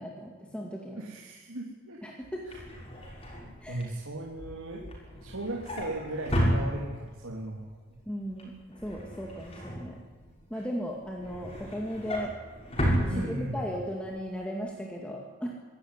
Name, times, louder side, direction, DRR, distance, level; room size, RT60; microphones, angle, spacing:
voice 1, 0.0-1.0 2.0-2.5 3.6-3.8 8.1-10.0 10.5-12.3 13.1-15.5, equal, 5° left, -2 dB, 2.3 m, -36 dB
voice 2, 0.9-2.0 2.5-2.6 3.7-4.8 5.2-7.6 10.5-10.6 13.1-13.6, right 1 dB, 75° right, -2 dB, 3.0 m, -36 dB
Drawer open or close, 2.2-7.3 7.6-8.0 8.2-10.4 10.9-13.8 14.2-14.4 14.7-14.8, equal, 25° left, 6.3 m, -33 dB
25.0 x 13.5 x 9.9 m, 1.3 s
head